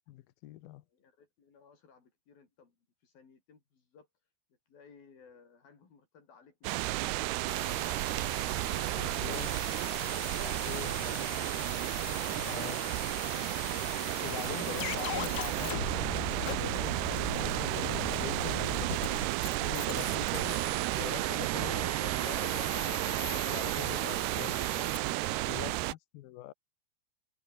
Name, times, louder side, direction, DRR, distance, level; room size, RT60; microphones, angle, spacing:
voice 1, 0.1-0.8 9.0-9.5 10.0-11.3 12.3-12.8 14.2-19.3 19.6-20.6 20.9-24.9 25.4-25.7 26.1-26.5, left 15 dB, 75° left, 2.3 m, -44 dB
voice 2, 0.9-4.1 4.7-8.1 8.5-9.5 12.2-13.0 13.4-13.6 25.4-25.9, left 5 dB, 50° left, 6.7 m, -59 dB
sound 1, 6.6-25.9, right 19 dB, 85° right, 2.4 m, -32 dB
sound 2, 7.5-25.0, left 18 dB, 90° left, 2.1 m, -42 dB
omnidirectional pair, 5.3 m